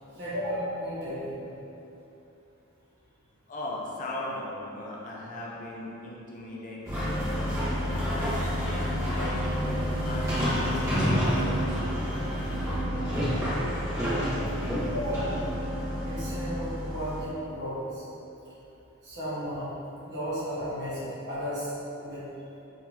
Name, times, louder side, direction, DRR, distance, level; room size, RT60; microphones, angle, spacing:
voice 1, 0.1-1.4 14.9-15.4 16.1-18.0 19.0-19.7 20.0-21.7 22.0-22.2, equal, 55° right, -11 dB, 1.3 m, -34 dB
voice 2, 3.5-8.6 9.1-11.8, left 1 dB, 35° left, -4 dB, 0.4 m, -38 dB
sound 1, 6.8-17.2, equal, 15° right, 1.1 m, -28 dB
3.7 x 3.0 x 2.8 m, 2.9 s
head